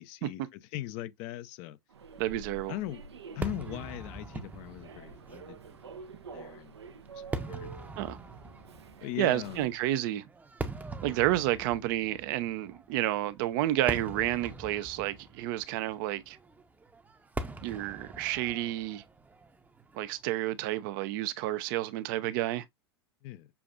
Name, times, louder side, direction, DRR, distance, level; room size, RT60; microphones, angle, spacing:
voice 1, 0.0-1.8 2.7-3.0 3.3-5.6 6.3-6.8 7.1-7.9 9.0-9.7 23.2-23.5, left 14 dB, 50° left, 0.6 m, -40 dB
Human voice / Subway metro underground, 1.9-9.9, right 5 dB, 85° right, 0.7 m, -48 dB
voice 2, 2.2-2.7 8.0-8.2 9.2-10.3 11.0-16.4 17.6-19.0 19.9-22.6, right 15 dB, 55° right, 0.6 m, -30 dB
Fireworks, 3.4-20.7, right 3 dB, 10° right, 0.7 m, -43 dB
6.9 x 2.5 x 2.4 m
hypercardioid pair, 100°, 14 cm